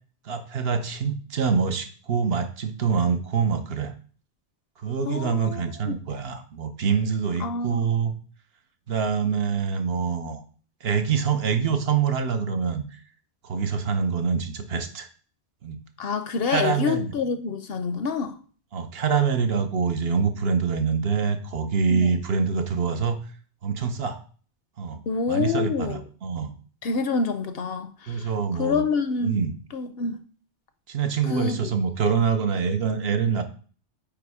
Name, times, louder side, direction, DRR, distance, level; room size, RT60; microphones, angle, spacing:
voice 1, 0.2-3.9 4.8-8.1 8.9-10.4 10.8-12.8 13.4-15.1 15.6-15.8 16.4-17.1 18.7-23.2 23.6-24.2 24.8-25.0 25.3-26.5 28.1-28.8 29.2-29.5 30.9-33.4, right 6 dB, 60° right, 1.0 m, -25 dB
voice 2, 5.0-6.0 7.4-7.9 16.0-18.4 21.9-22.2 25.1-26.0 26.8-28.3 28.6-29.4 29.7-30.2 31.3-31.7, left 4 dB, 65° left, 0.8 m, -27 dB
8.7 x 3.0 x 4.8 m
omnidirectional pair, 1.2 m